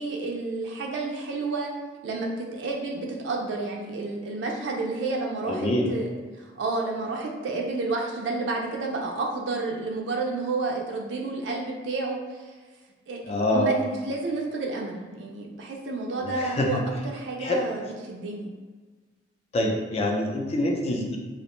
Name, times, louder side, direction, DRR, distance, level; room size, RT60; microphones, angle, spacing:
voice 1, 0.0-1.7 2.0-6.1 6.4-12.4 13.1-16.8 17.0-18.5, right 3 dB, 75° right, 0 dB, 0.4 m, -30 dB
voice 2, 5.5-5.9 13.3-13.7 16.2-16.8 17.4-17.6 19.5-21.2, left 1 dB, 35° left, 1 dB, 0.4 m, -25 dB
2.4 x 2.1 x 2.9 m, 1.4 s
head